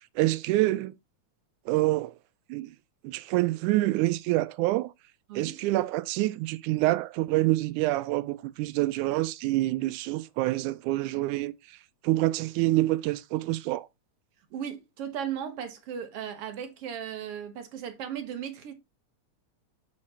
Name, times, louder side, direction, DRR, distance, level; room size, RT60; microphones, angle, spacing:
voice 1, 0.2-1.0 1.7-2.1 2.5-2.7 3.0-4.9 5.4-11.5 12.0-13.9, right 18 dB, 85° right, 2.0 m, -26 dB
voice 2, 14.5-18.7, right 8 dB, 60° right, 1.9 m, -36 dB
7.4 x 4.3 x 4.2 m
omnidirectional pair, 3.5 m